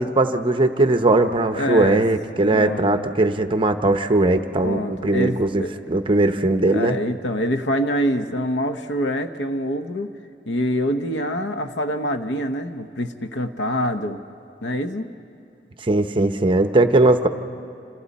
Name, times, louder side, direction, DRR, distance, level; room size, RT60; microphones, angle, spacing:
voice 1, 0.0-7.0 15.8-17.3, right 2 dB, 30° right, 8 dB, 0.8 m, -19 dB
voice 2, 1.6-2.0 2.5-3.0 4.6-5.7 6.7-10.1 10.5-14.2 14.6-15.1, equal, 85° left, 8 dB, 0.9 m, -25 dB
28.0 x 27.0 x 4.2 m, 2.7 s
head